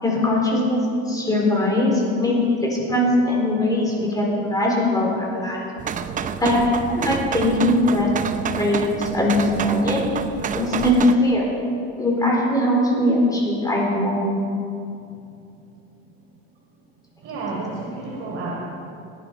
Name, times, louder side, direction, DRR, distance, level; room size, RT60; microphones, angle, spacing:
voice 1, 0.0-5.6 6.4-8.1 8.6-10.0 10.5-11.4 12.0-14.3, left 1 dB, 10° left, -2 dB, 4.3 m, -20 dB
sound 1, 5.8-11.1, right 7 dB, 25° right, 0.6 m, -28 dB
voice 2, 17.2-18.7, right 3 dB, 40° right, -6 dB, 3.8 m, -30 dB
18.5 x 11.5 x 5.2 m, 2.5 s
supercardioid pair, 125°, 30 cm